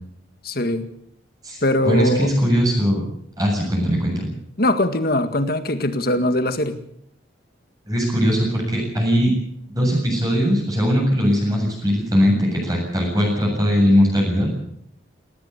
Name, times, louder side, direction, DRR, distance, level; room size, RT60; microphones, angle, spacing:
voice 1, 0.4-0.9 1.6-2.3 4.6-6.8, left 1 dB, 50° left, 9 dB, 1.9 m, -21 dB
voice 2, 1.8-3.0 3.4-4.3 7.9-9.3 9.7-14.5, equal, 20° right, -1 dB, 7.5 m, -20 dB
19.5 x 17.5 x 8.2 m, 0.69 s
head